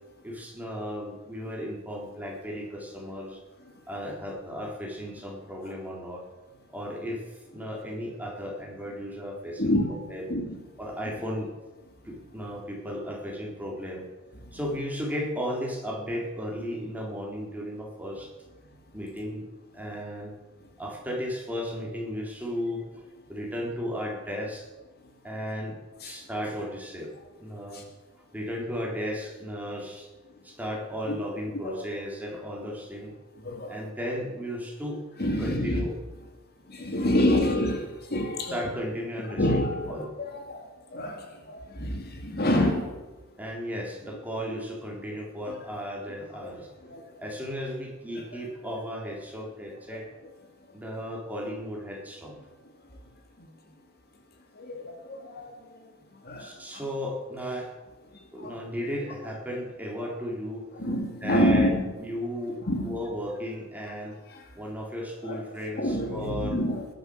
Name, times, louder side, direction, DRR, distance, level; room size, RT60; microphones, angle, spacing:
voice 1, 0.2-3.4 3.9-6.3 6.7-7.2 7.5-9.7 10.1-10.2 10.8-11.5 12.0-14.0 14.5-18.3 18.9-19.5 19.7-20.3 20.8-24.7 25.2-27.1 27.4-27.8 28.3-30.1 30.4-33.1 33.7-35.0 35.4-35.9 37.3-37.4 38.5-39.6 39.9-40.1 43.4-46.7 47.2-50.1 50.7-52.4 56.4-57.7 58.3-60.7 61.2-64.2 64.6-66.6, equal, 10° right, -2 dB, 3.9 m, -35 dB
voice 2, 9.6-10.0 10.3-10.6 25.4-25.5 26.0-26.2 27.7-27.8 31.6-31.8 33.4-33.8 35.2-35.8 36.7-37.8 38.1-38.6 39.3-42.9 45.5-45.6 46.4-46.5 46.9-47.0 48.1-48.4 49.7-50.1 54.6-55.5 56.2-56.9 58.4-58.5 58.8-58.9 60.0-60.1 60.7-61.9 62.6-63.0 64.3-64.4 65.2-65.4 65.8-66.9, left 1 dB, 50° left, 3 dB, 2.4 m, -28 dB
20.0 x 11.0 x 6.6 m, 1.2 s
head